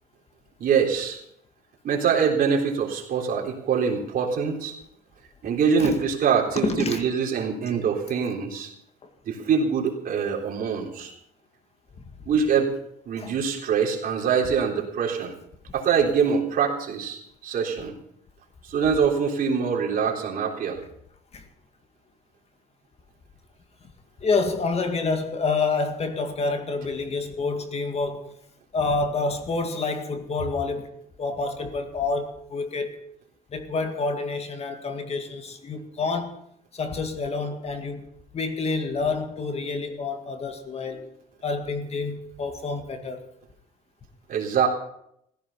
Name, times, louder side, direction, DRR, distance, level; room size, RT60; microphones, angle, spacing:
voice 1, 0.6-1.2 1.8-4.7 5.4-8.7 9.3-11.1 12.3-12.7 13.1-15.3 15.7-18.0 18.7-20.8 44.3-44.7, right 6 dB, 55° right, 1 dB, 3.7 m, -24 dB
voice 2, 6.5-7.0 9.0-9.1 13.2-13.3 21.3-21.5 24.2-28.3 28.7-30.9 31.2-33.0 33.5-36.4 36.7-38.1 38.3-41.1 41.4-43.3, left 3 dB, 40° left, 7 dB, 2.1 m, -28 dB
16.0 x 14.5 x 5.7 m, 0.74 s
cardioid pair, 110°, 17 cm